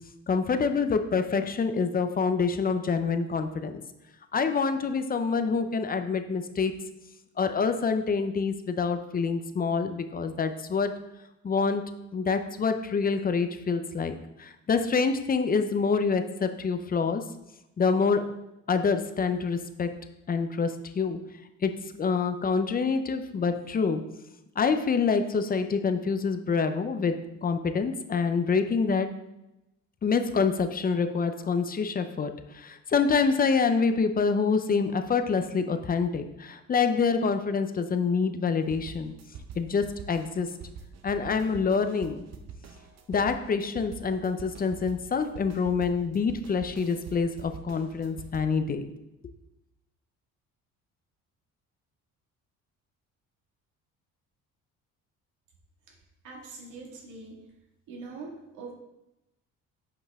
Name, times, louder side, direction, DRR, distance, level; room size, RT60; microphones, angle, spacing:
voice 1, 0.3-3.8 4.3-6.7 7.4-11.0 11.4-17.2 17.8-18.3 18.7-19.9 20.3-21.2 21.6-24.0 24.6-29.1 30.0-39.1 39.6-40.5 41.0-42.2 43.1-48.9, left 5 dB, 30° left, 8 dB, 0.6 m, -26 dB
sound 1, 38.7-48.6, right 5 dB, 55° right, 0.8 m, -45 dB
voice 2, 56.2-57.4 57.9-58.7, right 3 dB, 75° right, -1 dB, 1.9 m, -43 dB
8.0 x 5.4 x 3.6 m, 0.91 s
cardioid pair, 105°, 31 cm